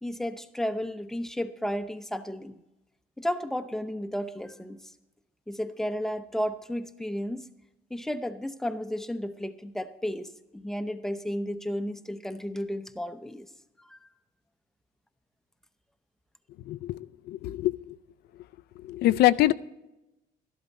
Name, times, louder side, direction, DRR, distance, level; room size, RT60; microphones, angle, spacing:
voice 1, 0.0-2.6 3.2-4.8 5.5-7.5 7.9-13.5 13.8-14.0, equal, ahead, 10 dB, 0.7 m, -33 dB
voice 2, 16.7-17.9 18.8-19.5, left 15 dB, 70° left, 15 dB, 0.5 m, -24 dB
12.5 x 12.0 x 4.2 m, 0.95 s
cardioid pair, 110°, 17 cm